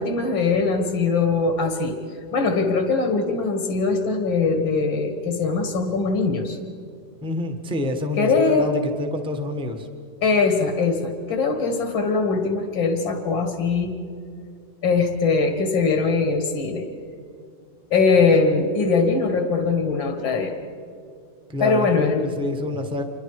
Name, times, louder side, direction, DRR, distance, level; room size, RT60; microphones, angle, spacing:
voice 1, 0.0-2.0 2.3-6.6 8.2-8.8 10.2-14.0 14.8-16.9 17.9-20.5 21.6-22.2, left 4 dB, 80° left, 5 dB, 2.5 m, -21 dB
voice 2, 7.2-9.9 21.5-23.0, left 1 dB, 5° right, 4 dB, 1.4 m, -27 dB
27.5 x 23.5 x 4.9 m, 2.4 s
omnidirectional pair, 2.1 m